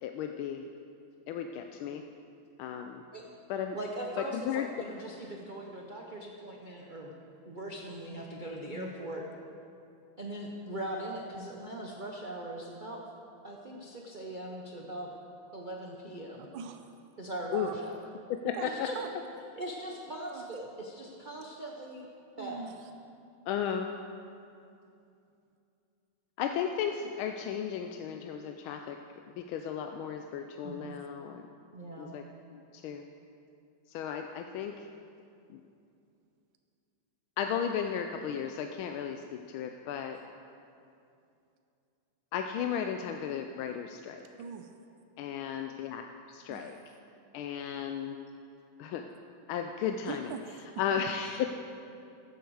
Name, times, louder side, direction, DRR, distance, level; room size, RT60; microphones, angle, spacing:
voice 1, 0.0-0.6 1.3-2.0 2.6-3.0 3.5-3.8 4.2-4.7 17.5-17.7 18.4-18.9 23.5-23.9 26.4-29.0 29.4-31.5 32.0-32.2 32.5-33.0 33.9-34.9 35.5-35.6 37.4-40.2 42.3-44.3 45.2-46.8 47.3-48.2 48.8-49.1 49.5-50.3 50.8-51.6, left 8 dB, 85° left, 5 dB, 1.4 m, -34 dB
voice 2, 3.7-7.1 7.4-9.2 10.2-13.0 13.4-15.1 15.5-16.5 17.2-18.1 18.6-19.0 19.6-22.1 22.4-22.7 31.7-32.1, right 1 dB, 60° right, -1 dB, 0.5 m, -40 dB
voice 3, 16.5-16.9 17.5-17.8 18.5-18.7 18.9-19.1 20.2-20.4 22.4-22.9 30.6-31.0 44.4-44.7 46.5-46.7 50.1-51.0, right 7 dB, 85° right, 6 dB, 1.4 m, -42 dB
14.0 x 8.1 x 4.7 m, 2.6 s
omnidirectional pair, 2.2 m